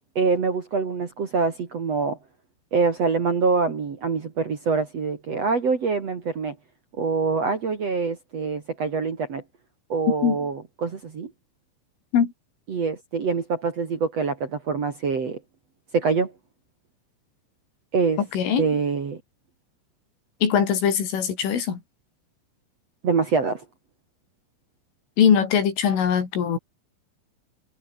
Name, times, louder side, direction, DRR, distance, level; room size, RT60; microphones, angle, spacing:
voice 1, 0.2-2.2 2.7-6.5 7.0-9.4 9.9-11.3 12.7-15.4 15.9-16.3 17.9-18.2 18.6-19.2 23.0-23.6, right 4 dB, 45° right, 2.6 m, -25 dB
voice 2, 18.3-18.6 20.4-21.8 25.2-26.6, left 8 dB, 85° left, 6.8 m, -21 dB
omnidirectional pair, 5.6 m